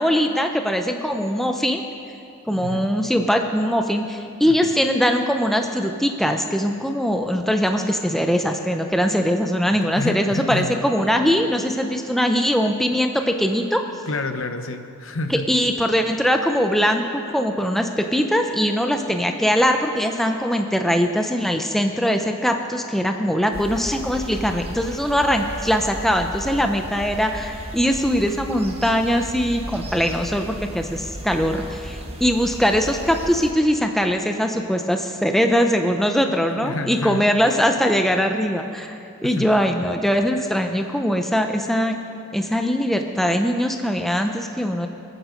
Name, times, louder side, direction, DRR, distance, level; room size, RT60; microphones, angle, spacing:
voice 1, 0.0-1.8 2.5-13.8 15.3-42.0 42.3-44.9, equal, ahead, 4 dB, 0.6 m, -21 dB
voice 2, 10.0-10.8 14.1-15.5 36.6-37.3 39.2-39.5, left 3 dB, 60° left, 8 dB, 1.0 m, -29 dB
sound 1, 23.5-33.5, equal, 25° right, 1.4 m, -35 dB
27.5 x 9.8 x 5.2 m, 2.7 s
head